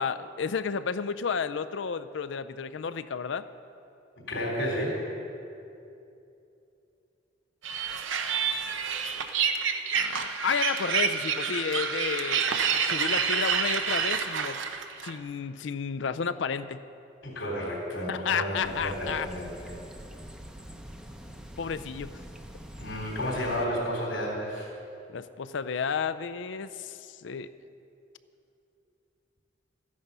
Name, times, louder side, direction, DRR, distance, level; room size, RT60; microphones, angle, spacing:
voice 1, 0.0-3.5 9.9-12.4 12.9-14.6 15.0-16.8 18.1-19.3 21.6-22.2 25.1-27.5, left 6 dB, 70° left, 12 dB, 0.5 m, -32 dB
voice 2, 4.3-5.2 17.2-19.7 22.8-24.7, equal, 85° left, -2 dB, 3.5 m, -31 dB
sound 1, 7.6-15.1, right 6 dB, 85° right, 0.8 m, -28 dB
very small rivulet birds, 18.6-23.7, equal, 5° right, 0.7 m, -44 dB
14.0 x 9.6 x 5.5 m, 2.7 s
head